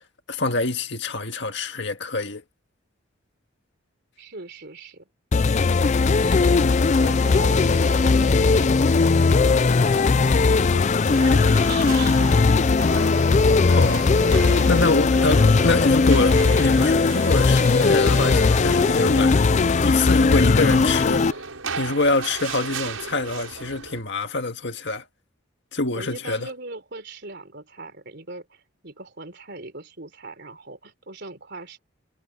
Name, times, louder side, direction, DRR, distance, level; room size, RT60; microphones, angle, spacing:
voice 1, 0.3-2.4 6.4-6.8 13.7-19.3 19.8-21.4 21.8-25.1 25.7-26.5, left 3 dB, 55° left, 1.9 m, -25 dB
voice 2, 4.2-5.1 5.9-10.5 10.7-12.4 12.7-12.9 25.9-31.8, right 3 dB, 55° right, 4.0 m, -40 dB
sound 1, 5.3-21.3, left 4 dB, 35° left, 0.4 m, -18 dB
sound 2, 11.0-24.0, right 4 dB, 85° right, 7.4 m, -35 dB
head